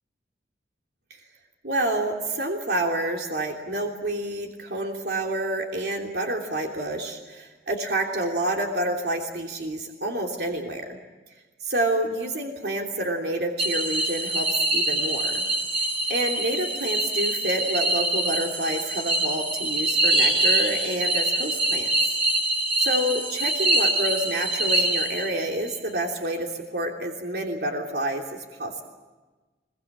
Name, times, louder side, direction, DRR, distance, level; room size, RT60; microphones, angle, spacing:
voice 1, 1.6-11.0 11.6-15.4 15.7-21.9 22.8-28.8, right 1 dB, 65° right, 1 dB, 3.1 m, -28 dB
sound 1, 13.6-25.5, right 1 dB, 30° right, 6.1 m, -24 dB
25.0 x 23.0 x 8.6 m, 1.2 s
head